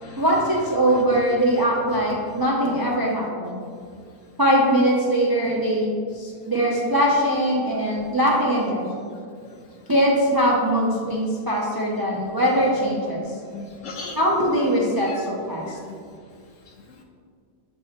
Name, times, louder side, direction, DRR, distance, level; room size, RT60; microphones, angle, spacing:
voice 1, 0.2-3.6 4.4-9.0 9.9-13.2 14.1-15.8, equal, 35° right, -4 dB, 0.3 m, -21 dB
voice 2, 13.5-14.2 14.8-15.2 15.6-16.0, left 4 dB, 65° left, 2 dB, 0.8 m, -37 dB
7.4 x 3.4 x 4.3 m, 2.2 s
omnidirectional pair, 1.7 m